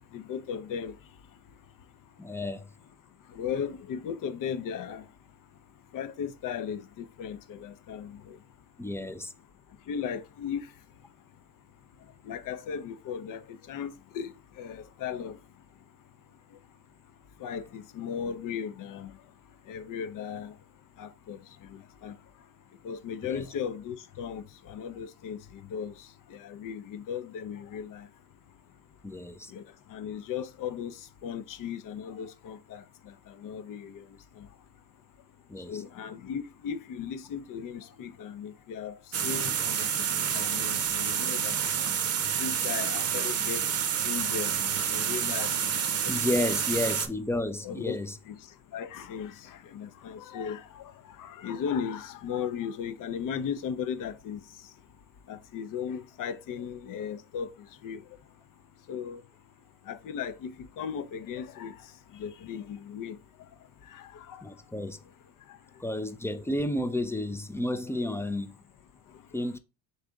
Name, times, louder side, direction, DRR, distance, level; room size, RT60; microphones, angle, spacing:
voice 1, 0.1-0.9 3.4-5.0 5.9-8.4 9.9-10.6 12.3-13.4 13.7-14.3 14.6-15.4 17.4-19.1 19.7-20.5 21.0-21.4 21.7-22.1 22.8-25.4 25.7-25.9 26.4-28.0 29.5-29.6 29.9-30.9 31.2-32.8 33.4-33.9 35.7-38.9 39.2-39.9 40.2-41.6 42.4-43.6 44.0-44.6 44.9-45.5 45.9-46.0 46.3-46.4 47.6-48.0 48.3-48.4 48.7-50.9 51.2-54.4 55.3-57.5 57.8-58.0 58.9-59.2 59.9-60.5 60.8-61.7 62.2-63.2 63.9-64.4, left 7 dB, 55° left, 0.6 m, -36 dB
voice 2, 2.2-2.7 8.8-9.3 23.2-23.4 29.0-29.5 35.5-35.7 46.1-48.2 64.4-65.0 65.8-68.6 69.3-69.6, left 1 dB, 5° left, 0.3 m, -31 dB
sound 1, 39.1-47.1, right 8 dB, 40° right, 0.7 m, -29 dB
3.9 x 3.2 x 3.6 m
supercardioid pair, 75°, 39 cm